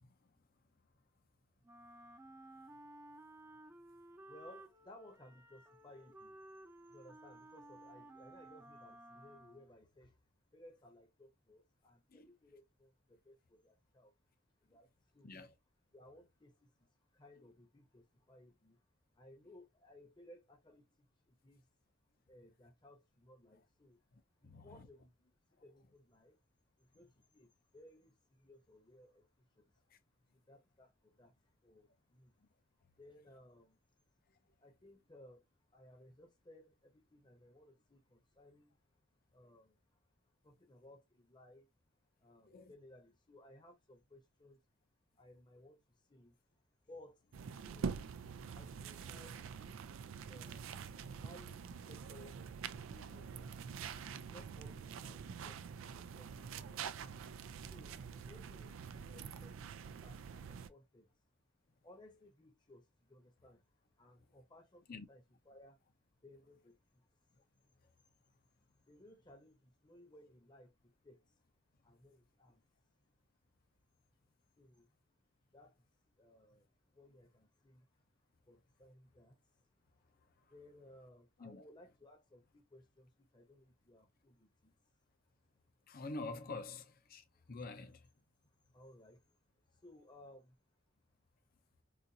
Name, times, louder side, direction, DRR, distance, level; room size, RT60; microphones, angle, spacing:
Wind instrument woodwind instrument, 1.6-9.8, right 1 dB, 15° right, 0.6 m, -56 dB
voice 1, 4.2-10.2 10.5-14.2 14.6-15.4 15.9-18.8 19.1-21.7 22.3-24.0 24.4-26.4 26.8-29.8 30.3-32.4 33.0-33.8 34.6-39.1 39.3-41.7 42.2-44.6 45.1-46.4 46.9-48.1 48.5-50.7 51.0-53.6 54.0-56.8 57.6-61.2 61.8-65.8 66.1-67.1 67.3-67.5 68.2-68.4 68.9-71.4 71.8-72.6 72.9-73.1 74.6-74.9 75.5-75.9 76.2-78.0 78.4-85.0 87.3-87.5 88.5-89.4 89.7-90.6, left 1 dB, 25° left, 0.8 m, -61 dB
voice 2, 24.5-24.9 42.5-42.7 64.9-65.1 81.4-81.6 85.9-86.8 87.1-87.2 87.5-87.9, left 3 dB, 50° left, 0.6 m, -45 dB
sound 1, 47.3-60.7, right 6 dB, 85° right, 0.4 m, -46 dB
4.0 x 2.5 x 2.7 m
head